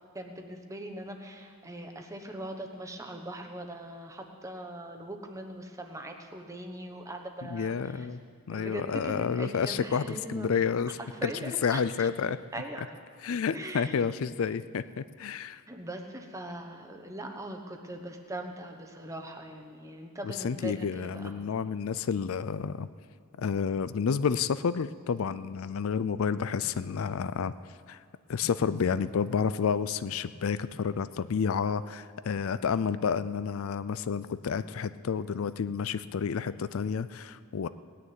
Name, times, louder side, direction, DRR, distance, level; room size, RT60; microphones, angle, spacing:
voice 1, 0.1-8.1 8.5-10.5 11.0-12.1 12.5-12.8 13.5-14.0 15.7-21.4 37.6-37.7, right 1 dB, 15° right, 3 dB, 1.1 m, -41 dB
voice 2, 7.4-8.2 8.5-11.3 11.6-12.4 13.2-15.6 20.4-22.9 23.4-27.5 27.9-28.0 28.3-37.7, left 6 dB, 65° left, 14 dB, 0.4 m, -30 dB
18.5 x 6.7 x 9.2 m, 2.2 s
head